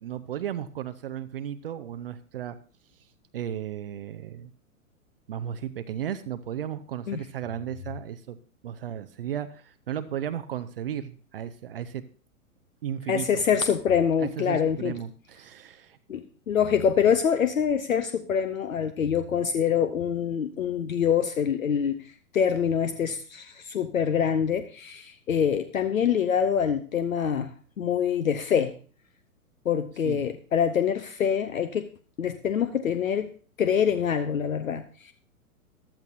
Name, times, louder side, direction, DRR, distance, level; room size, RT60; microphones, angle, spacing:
voice 1, 0.0-2.6 3.3-4.5 5.3-8.4 8.6-12.0 12.8-13.4 14.2-16.2 30.0-30.2, right 10 dB, 40° right, 10 dB, 0.6 m, -35 dB
voice 2, 13.1-14.9 16.1-28.7 29.6-31.9 32.2-33.3 33.6-35.1, left 8 dB, 65° left, 11 dB, 0.9 m, -25 dB
14.5 x 12.0 x 2.6 m, 0.41 s
figure-of-eight pair, 110°, 44 cm